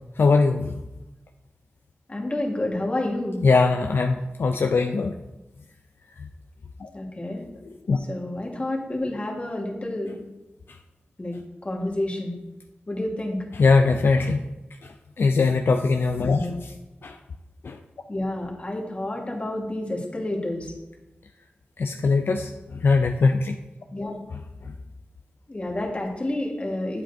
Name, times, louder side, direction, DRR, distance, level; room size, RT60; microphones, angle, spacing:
voice 1, 0.2-0.8 3.4-5.1 6.8-6.9 7.9-8.0 13.6-14.4 15.2-16.7 17.0-17.2 17.6-17.8 21.8-22.5 22.8-23.5, left 4 dB, 70° left, 5 dB, 0.4 m, -21 dB
voice 2, 2.1-3.4 6.9-7.4 8.0-10.2 11.2-11.3 11.6-12.3 12.9-13.4 16.3-16.6 18.1-20.7 23.9-24.2 25.5-27.0, left 1 dB, 30° left, 0 dB, 1.5 m, -29 dB
8.8 x 7.5 x 2.7 m, 1.0 s
wide cardioid pair, 75°, 4 cm